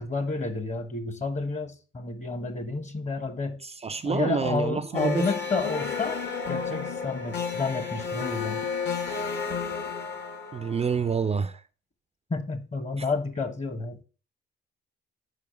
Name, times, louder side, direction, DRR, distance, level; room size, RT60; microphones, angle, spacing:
voice 1, 0.0-3.6 4.0-8.6 12.3-14.0, left 3 dB, 35° left, 1.3 m, -30 dB
voice 2, 3.6-5.3 10.5-11.6, right 6 dB, 30° right, 0.5 m, -28 dB
sound 1, 4.9-11.2, left 5 dB, 55° left, 1.6 m, -32 dB
5.0 x 4.5 x 6.1 m
supercardioid pair, 60°, 21 cm